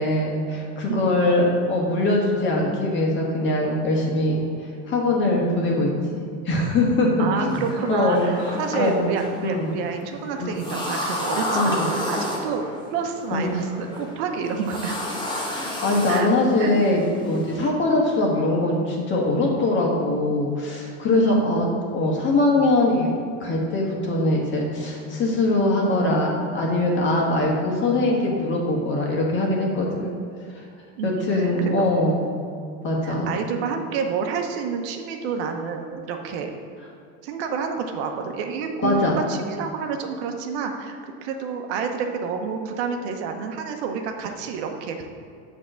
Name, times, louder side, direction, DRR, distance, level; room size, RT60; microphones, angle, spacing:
voice 1, 0.0-4.4 4.9-7.6 7.9-8.5 8.7-9.1 9.4-9.7 10.4-10.7 11.5-11.9 13.3-13.6 15.5-21.7 21.9-23.1 23.4-30.1 31.0-32.2 32.8-33.3 38.8-39.2, left 2 dB, 35° left, -1 dB, 1.6 m, -22 dB
voice 2, 7.2-12.6 12.9-15.0 16.1-16.3 16.6-16.7 21.2-21.5 31.0-31.7 33.0-36.5 37.2-45.1, right 6 dB, 65° right, 4 dB, 0.9 m, -29 dB
sound 1, 7.5-17.7, left 1 dB, 15° left, 1.2 m, -32 dB
7.8 x 3.6 x 6.3 m, 2.4 s
supercardioid pair, 135°, 36 cm